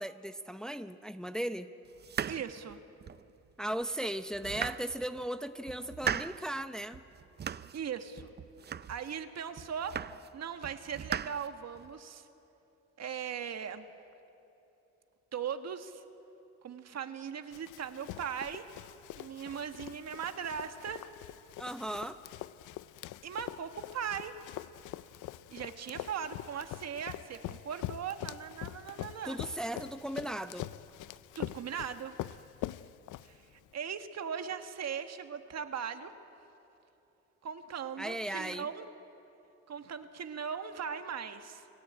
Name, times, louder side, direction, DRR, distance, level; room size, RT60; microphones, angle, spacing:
voice 1, 0.0-1.7 3.6-7.0 21.6-22.2 29.2-30.7 38.0-38.7, right 1 dB, ahead, 9 dB, 0.8 m, -37 dB
sound 1, 2.0-3.3 3.8-3.9 4.3-5.3 5.7-6.5 6.9-7.8 8.2-9.2 9.6-10.4 10.6-11.9, right 8 dB, 35° right, 0.6 m, -39 dB
voice 2, 2.3-2.8 7.7-8.3 8.9-10.0 10.3-12.3 13.0-13.9 15.3-16.0 16.6-18.7 19.2-21.0 23.2-24.4 25.5-29.4 31.3-32.1 33.2-36.1 37.4-38.9 39.7-41.7, right 7 dB, 60° right, 8 dB, 1.7 m, -39 dB
Run, 17.5-33.7, left 14 dB, 80° left, 0.6 m, -44 dB
30.0 x 18.0 x 8.9 m, 3.0 s
cardioid pair, 90°, 30 cm